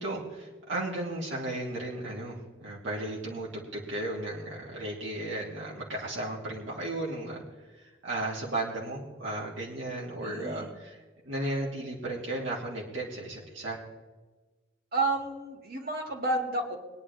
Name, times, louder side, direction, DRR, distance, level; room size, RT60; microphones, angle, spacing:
voice 1, 0.0-7.4 7.7-13.8, right 1 dB, 70° right, -4 dB, 2.8 m, -35 dB
voice 2, 10.2-10.7 14.9-16.8, right 2 dB, 55° right, 1 dB, 2.6 m, -31 dB
22.5 x 10.0 x 3.5 m, 1.2 s
head